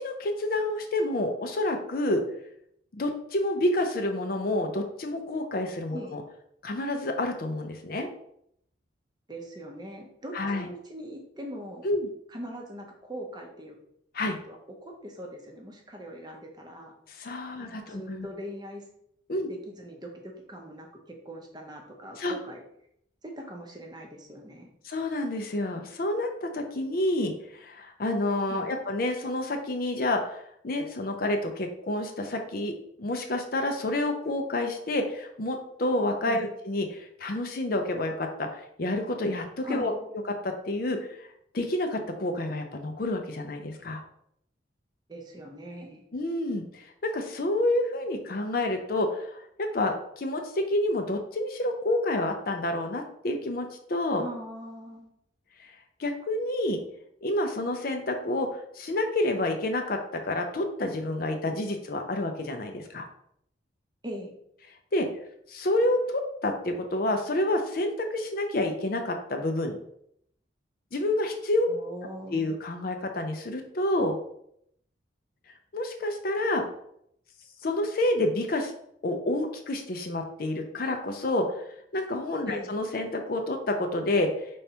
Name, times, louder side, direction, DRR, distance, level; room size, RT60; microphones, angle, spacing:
voice 1, 0.0-2.2 2.9-6.2 6.6-8.1 10.3-10.7 11.8-12.1 14.1-14.4 17.1-18.3 19.3-19.5 22.2-22.4 24.8-39.9 40.3-41.3 41.5-44.0 46.1-54.2 55.6-55.7 56.0-56.8 57.2-63.1 64.9-65.1 65.5-69.8 70.9-71.7 72.3-74.2 75.7-76.7 77.6-78.7 79.0-81.6 81.9-84.5, left 1 dB, 50° left, 5 dB, 0.5 m, -29 dB
voice 2, 9.3-11.9 12.3-13.8 14.5-16.9 17.6-18.9 19.5-22.6 23.2-24.7 28.5-28.7 36.2-36.4 39.6-40.1 45.1-46.0 54.2-55.1 64.0-64.3 71.7-72.6 82.5-82.7, equal, 20° right, 1 dB, 0.7 m, -41 dB
5.3 x 3.4 x 2.8 m, 0.72 s
head